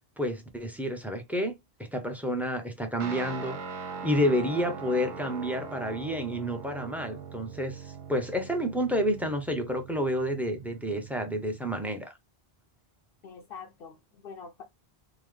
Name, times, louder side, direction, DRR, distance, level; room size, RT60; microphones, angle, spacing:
voice 1, 0.2-1.5 1.9-3.6 4.0-12.1, equal, ahead, 0.5 m, -29 dB
Guitar, 3.0-11.8, right 5 dB, 55° right, 0.7 m, -41 dB
voice 2, 13.2-14.6, left 5 dB, 70° left, 0.8 m, -45 dB
3.7 x 2.1 x 3.1 m
omnidirectional pair, 1.0 m